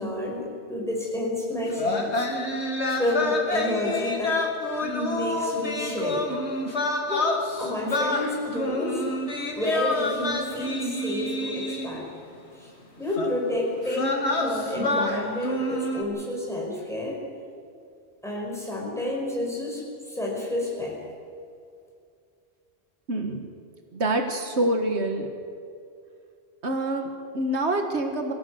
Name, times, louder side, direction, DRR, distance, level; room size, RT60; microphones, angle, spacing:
voice 1, 0.0-2.3 2.9-4.4 4.8-6.3 7.1-7.3 7.6-9.1 9.6-12.1 12.5-12.7 13.0-17.2 18.2-21.0, left 1 dB, ahead, -2 dB, 5.6 m, -30 dB
sound 1, 1.7-12.1 13.1-13.3 13.8-16.0, left 1 dB, 70° left, 2.3 m, -28 dB
voice 2, 23.1-23.4 23.9-25.3 26.6-28.3, right 1 dB, 75° right, 5 dB, 1.8 m, -26 dB
24.0 x 16.0 x 8.0 m, 2.4 s
omnidirectional pair, 1.2 m